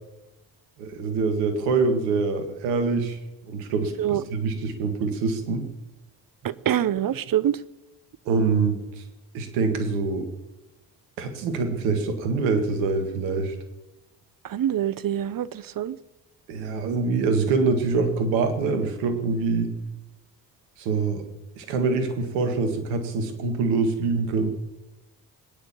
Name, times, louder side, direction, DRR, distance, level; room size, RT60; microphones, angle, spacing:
voice 1, 0.8-3.2 3.4-5.6 8.3-9.0 9.3-10.3 11.2-13.6 16.5-19.7 20.8-21.2 21.6-24.5, right 4 dB, 80° right, 7 dB, 2.0 m, -25 dB
voice 2, 6.4-7.6 14.4-16.0, right 11 dB, 45° right, 18 dB, 0.8 m, -25 dB
20.5 x 9.4 x 7.0 m, 1.0 s
hypercardioid pair, 45°, 48 cm